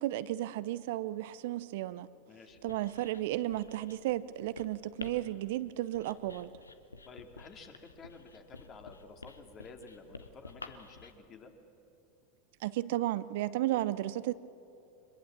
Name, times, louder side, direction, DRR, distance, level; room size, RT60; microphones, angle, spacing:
voice 1, 0.0-2.1 2.6-6.5 12.6-14.3, right 15 dB, 60° right, 0.6 m, -33 dB
voice 2, 2.3-2.6 7.0-11.5, left 4 dB, 35° left, 2.5 m, -52 dB
Writing, 2.5-11.1, left 3 dB, 90° left, 0.9 m, -51 dB
23.0 x 21.5 x 7.5 m
figure-of-eight pair, 85°, 0 cm